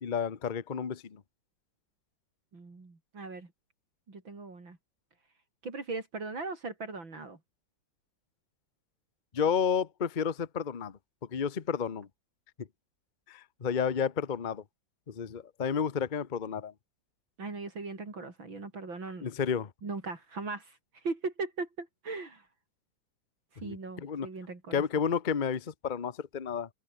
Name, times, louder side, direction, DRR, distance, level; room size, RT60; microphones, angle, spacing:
voice 1, 0.0-1.2 9.3-10.9 11.3-12.1 13.3-14.6 15.1-16.7 19.2-19.7 23.6-24.3 24.7-26.7, left 7 dB, 35° left, 0.9 m, -31 dB
voice 2, 2.5-3.5 4.1-4.8 5.6-7.4 17.4-19.4 19.8-22.5 23.6-24.8, right 3 dB, 75° right, 5.3 m, -39 dB
omnidirectional pair, 2.1 m